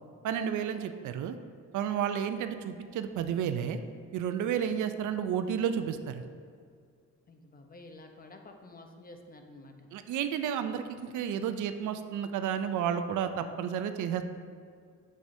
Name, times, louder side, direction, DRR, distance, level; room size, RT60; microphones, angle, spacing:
voice 1, 0.2-1.4 1.7-3.8 4.1-6.2 9.9-14.2, right 8 dB, 75° right, 9 dB, 0.5 m, -31 dB
voice 2, 7.3-9.9, left 2 dB, 30° left, 4 dB, 0.8 m, -50 dB
8.3 x 7.6 x 2.7 m, 2.1 s
cardioid pair, 90°, 30 cm